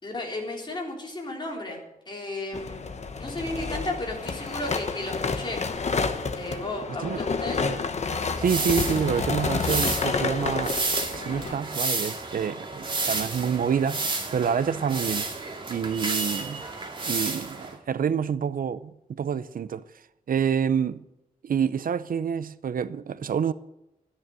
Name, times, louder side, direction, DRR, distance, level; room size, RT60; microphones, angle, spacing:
voice 1, 0.0-1.8 2.1-2.8 3.2-5.6 6.3-7.6 15.8-16.2, left 2 dB, 30° left, 3.6 m, -34 dB
sound 1, 2.5-11.6, left 4 dB, 50° left, 1.1 m, -29 dB
sound 2, 8.4-17.8, right 3 dB, 35° right, 2.2 m, -31 dB
voice 2, 8.4-10.8 11.1-15.3 15.7-16.6 17.1-19.8 20.3-21.0 21.4-23.5, right 7 dB, 75° right, 0.6 m, -27 dB
14.0 x 9.8 x 7.7 m
wide cardioid pair, 170°, 15 cm